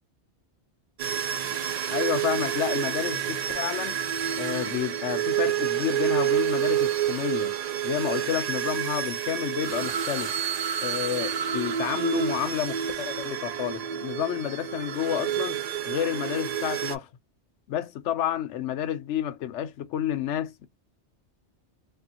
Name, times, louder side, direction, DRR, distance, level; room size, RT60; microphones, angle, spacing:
sound 1, 1.0-17.0, right 10 dB, 60° right, 0.4 m, -29 dB
voice 1, 1.9-4.0 4.4-7.6 7.8-10.3 10.8-17.1 17.7-20.7, left 10 dB, 80° left, 0.9 m, -30 dB
3.3 x 2.4 x 2.8 m
omnidirectional pair, 1.2 m